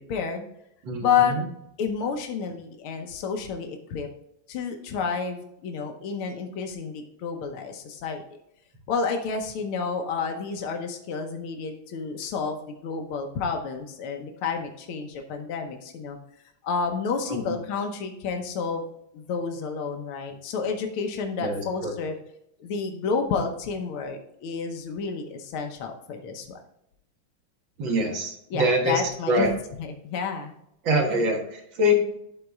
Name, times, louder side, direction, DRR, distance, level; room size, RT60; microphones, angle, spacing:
voice 1, 0.1-0.5 1.0-1.4 1.8-4.1 4.5-8.2 8.9-16.2 16.6-18.8 19.1-22.1 22.6-26.6 28.5-30.5 31.1-31.2, left 5 dB, 85° left, 4 dB, 1.8 m, -30 dB
voice 2, 0.8-1.5 17.3-17.6 21.4-22.0 27.8-29.5 30.8-31.9, equal, 65° right, 2 dB, 2.2 m, -25 dB
12.0 x 4.1 x 3.5 m, 0.78 s
omnidirectional pair, 2.3 m